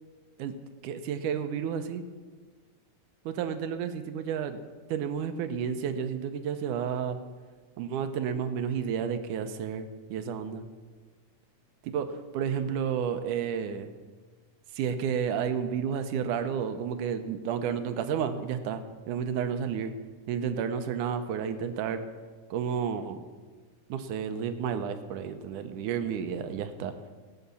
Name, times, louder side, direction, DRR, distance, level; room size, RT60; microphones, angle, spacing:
voice 1, 0.8-2.0 3.3-4.6 4.9-7.2 7.8-10.7 11.8-12.1 12.3-13.9 14.8-18.8 19.1-19.9 20.3-22.0 22.5-23.2 23.9-26.9, right 7 dB, 80° right, 9 dB, 2.3 m, -31 dB
17.0 x 8.5 x 6.9 m, 1.5 s
omnidirectional pair, 3.6 m